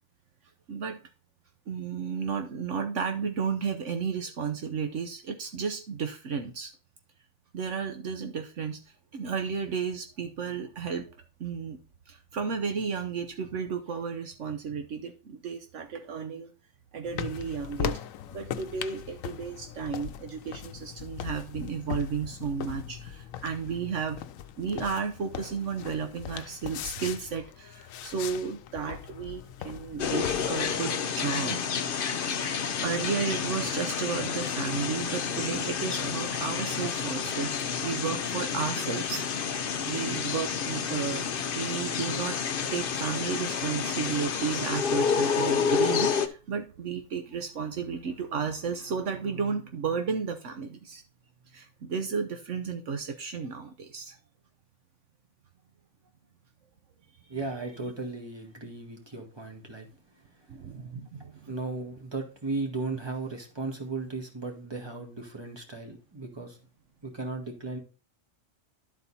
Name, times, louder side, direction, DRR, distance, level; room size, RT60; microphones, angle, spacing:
voice 1, 0.7-1.0 1.7-6.7 7.5-8.8 9.1-11.1 11.4-11.8 12.1-16.5 16.9-18.0 18.3-24.2 24.6-31.6 32.3-39.3 39.8-42.4 42.7-51.0 51.5-54.2 60.5-61.5, right 6 dB, 70° right, 6 dB, 1.1 m, -33 dB
sound 1, 17.0-30.8, left 9 dB, 90° left, 1.0 m, -39 dB
sound 2, 30.0-46.3, left 6 dB, 50° left, 0.8 m, -29 dB
voice 2, 57.3-59.9 60.1-60.5 61.4-66.6 67.0-67.8, right 3 dB, 20° right, 1 dB, 1.8 m, -36 dB
11.5 x 4.2 x 4.1 m, 0.34 s
omnidirectional pair, 1.3 m